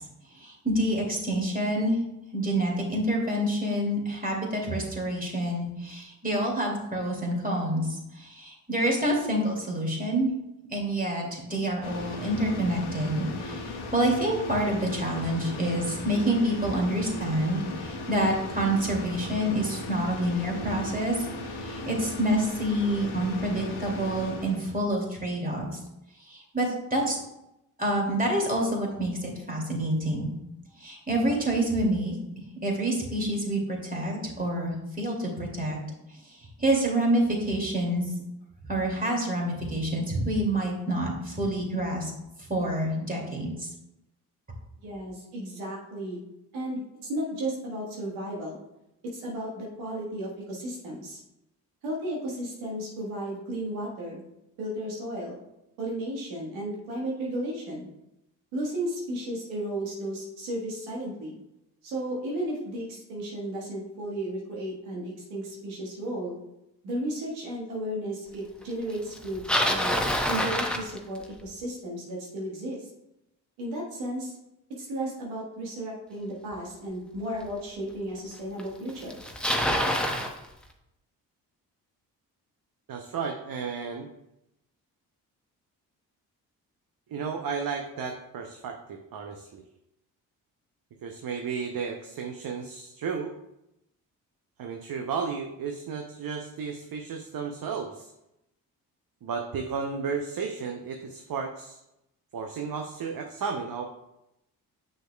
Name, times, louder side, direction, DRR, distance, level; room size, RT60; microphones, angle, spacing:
voice 1, 0.3-2.0 2.3-10.3 10.7-21.3 21.5-25.8 26.3-27.2 27.8-30.3 30.8-32.2 32.6-35.8 36.6-38.0 38.7-42.1 42.5-43.7, right 1 dB, 20° right, -1 dB, 2.3 m, -27 dB
sound 1, 11.8-24.8, left 2 dB, 55° left, 1.1 m, -37 dB
voice 2, 44.8-46.2 46.5-48.6 49.1-51.2 51.8-54.2 54.6-55.3 55.8-57.9 58.5-61.3 61.8-66.3 66.8-69.9 70.2-72.9 73.6-74.3 74.8-79.2, right 1 dB, 85° right, -3 dB, 1.5 m, -34 dB
Bicycle, 69.1-71.5 76.5-76.6 77.5-77.6 78.6-78.7 78.9-80.3, equal, ahead, 0.9 m, -26 dB
voice 3, 82.9-84.1 87.1-89.6 91.0-93.4 94.6-98.1 99.2-101.8 102.3-103.8, right 5 dB, 50° right, 3 dB, 0.8 m, -33 dB
6.6 x 6.3 x 2.2 m, 0.87 s
hypercardioid pair, 45°, 45 cm